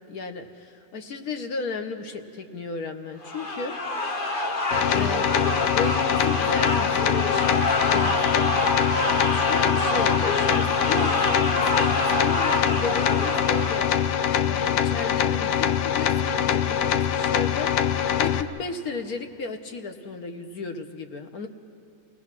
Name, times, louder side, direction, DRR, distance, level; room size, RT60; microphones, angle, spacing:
voice 1, 0.1-3.7 4.9-7.6 7.9-8.9 9.2-13.9 14.4-21.5, left 4 dB, 55° left, 6 dB, 1.5 m, -34 dB
sound 1, 3.2-14.2, left 2 dB, 35° left, 1.1 m, -26 dB
sound 2, 4.7-18.4, left 9 dB, 70° left, 1.2 m, -24 dB
28.5 x 18.0 x 6.0 m, 2.8 s
omnidirectional pair, 2.0 m